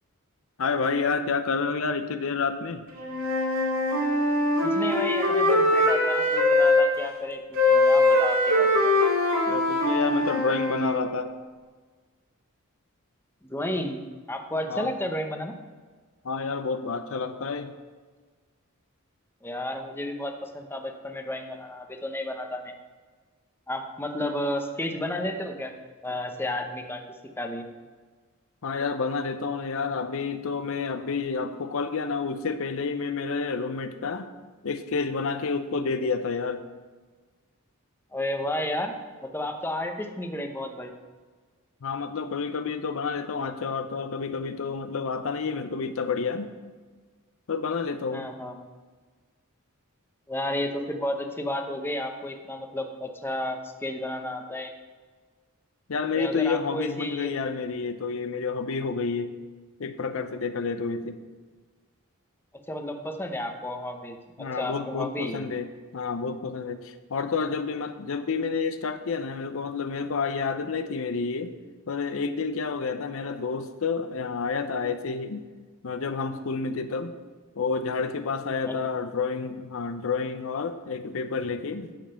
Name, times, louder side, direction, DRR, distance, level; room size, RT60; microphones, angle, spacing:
voice 1, 0.6-2.8 9.5-11.3 14.7-14.9 16.2-17.7 28.6-34.3 34.6-36.6 41.8-46.5 47.5-48.3 55.9-59.4 59.8-61.2 64.4-71.5 71.9-75.4 75.8-77.1 77.6-81.9, left 4 dB, 65° left, 10 dB, 0.6 m, -29 dB
Wind instrument woodwind instrument, 2.9-6.9 7.5-11.1, left 2 dB, 70° right, 2.5 m, -22 dB
voice 2, 4.6-8.9 13.4-14.0 14.3-15.5 19.4-22.7 23.7-25.7 26.0-27.0 27.4-27.6 38.1-38.9 39.2-40.9 48.1-48.6 50.3-54.7 56.1-57.3 62.7-65.5 78.7-78.8, left 1 dB, 10° left, 4 dB, 0.8 m, -32 dB
9.0 x 7.3 x 5.6 m, 1.4 s
head